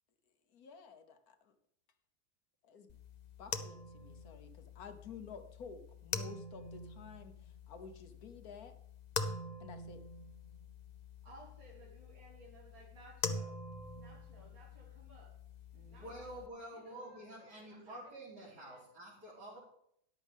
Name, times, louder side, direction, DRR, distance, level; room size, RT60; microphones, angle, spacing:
voice 1, 0.5-1.5 2.6-3.0 3.4-8.8 9.6-10.0, left 5 dB, 65° left, 8 dB, 1.5 m, -52 dB
sound 1, 2.9-16.5, left 3 dB, 45° left, 0.5 m, -45 dB
voice 2, 11.2-13.6 13.9-15.3 15.8-16.4 16.7-18.9, right 1 dB, 60° right, -4 dB, 3.1 m, -59 dB
voice 3, 15.7-19.6, right 1 dB, 80° right, -9 dB, 3.9 m, -49 dB
13.5 x 10.5 x 3.6 m, 0.72 s
omnidirectional pair, 1.7 m